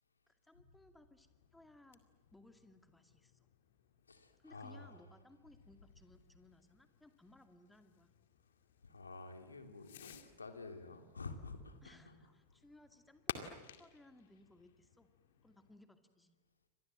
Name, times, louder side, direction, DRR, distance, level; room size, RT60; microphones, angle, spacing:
voice 1, 0.3-2.0 2.3-3.4 4.4-8.1 11.8-13.4 13.8-15.1 15.4-16.4, left 1 dB, 5° left, 8 dB, 2.4 m, -63 dB
Fireworks, 1.2-15.8, left 9 dB, 60° left, 2.2 m, -55 dB
voice 2, 4.1-5.0 8.8-12.2, left 3 dB, 75° left, 6 dB, 3.0 m, -50 dB
30.0 x 25.0 x 7.8 m, 1.1 s
figure-of-eight pair, 90°, 0 cm